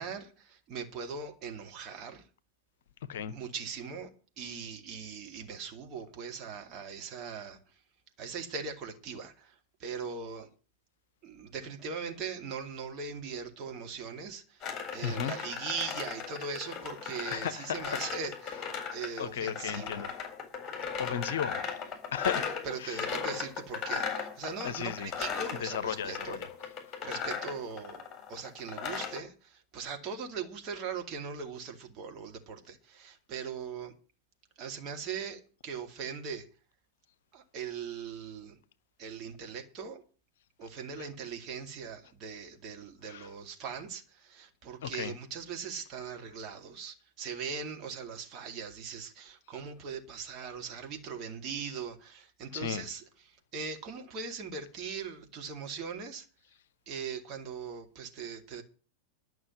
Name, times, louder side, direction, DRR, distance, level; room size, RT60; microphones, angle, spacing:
voice 1, 0.0-2.2 3.3-4.1 4.4-7.6 8.2-9.5 9.8-10.5 11.2-14.6 14.9-20.1 22.2-26.4 27.0-28.0 28.3-33.9 34.6-36.5 37.3-38.6 39.0-40.0 40.6-53.0 53.5-56.3 56.9-58.6, right 5 dB, 35° right, 2.3 m, -40 dB
sound 1, 14.6-29.2, left 6 dB, 20° left, 4.0 m, -37 dB
voice 2, 15.0-15.3 17.3-18.0 19.2-20.1 20.6-22.4 22.8-23.0 24.6-25.2 25.6-26.5 26.9-27.0 41.0-41.1 43.0-43.3 44.8-45.2 52.5-52.9, left 8 dB, 60° left, 0.7 m, -35 dB
12.0 x 6.2 x 9.5 m
figure-of-eight pair, 90°, 0 cm